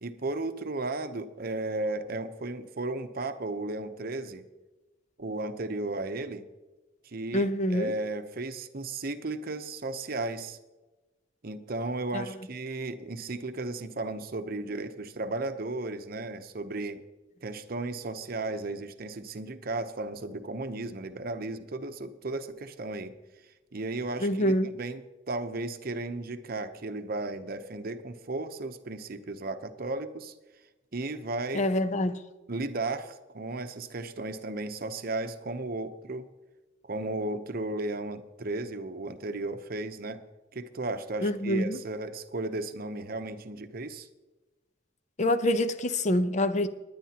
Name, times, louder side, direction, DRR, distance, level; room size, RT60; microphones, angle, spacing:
voice 1, 0.0-4.4 5.2-6.4 7.0-10.6 11.4-17.0 17.4-23.2 23.7-30.3 30.9-31.7 32.5-36.3 36.8-40.2 40.5-44.1, right 2 dB, 50° right, 0.8 m, -35 dB
voice 2, 7.3-7.9 12.1-12.2 24.2-24.7 31.5-32.2 41.2-41.8 45.2-46.7, left 1 dB, 40° left, 0.7 m, -26 dB
19.5 x 10.5 x 2.9 m
head